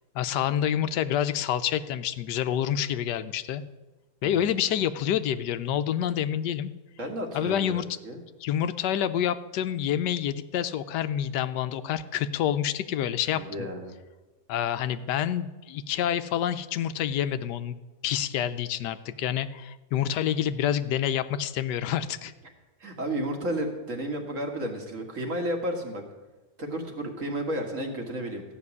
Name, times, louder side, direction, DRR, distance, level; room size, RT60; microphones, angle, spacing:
voice 1, 0.1-3.6 4.2-6.7 7.3-7.8 8.4-13.7 14.5-17.8 18.0-22.3, left 10 dB, 85° left, 12 dB, 1.3 m, -28 dB
voice 2, 7.0-8.2 13.3-13.9 22.8-26.0 26.6-28.4, right 1 dB, 50° right, 3 dB, 2.2 m, -32 dB
14.5 x 6.1 x 9.6 m, 1.2 s
omnidirectional pair, 1.8 m